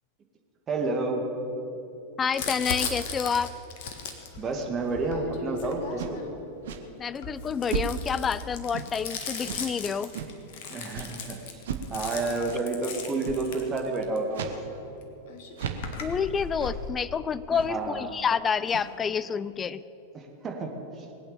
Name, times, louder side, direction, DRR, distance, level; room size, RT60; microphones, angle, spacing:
voice 1, 0.7-1.2 4.3-6.2 10.7-11.6 11.9-14.5 17.7-18.1 20.1-21.1, right 3 dB, 25° right, 2 dB, 2.3 m, -30 dB
voice 2, 2.2-3.5 7.0-10.1 16.0-19.8, left 6 dB, 20° left, 16 dB, 0.4 m, -28 dB
Crumpling crinkling, 2.3-6.4 7.1-14.2 15.0-15.1 15.3-16.9, left 5 dB, 50° left, 1.7 m, -37 dB
sound 1, 6.0-6.2 6.6-6.9 7.7-8.1 8.7-9.0 9.5-9.7 10.1-10.4 10.9-11.1 11.6-11.9 12.5-12.6 13.2-13.5 14.3-14.6 14.9-15.0 15.6-16.0 16.6-16.8 17.5-17.8 18.6-19.0, right 7 dB, 55° right, 1.2 m, -35 dB
20.5 x 8.8 x 7.1 m, 3.0 s
figure-of-eight pair, 90°, 0 cm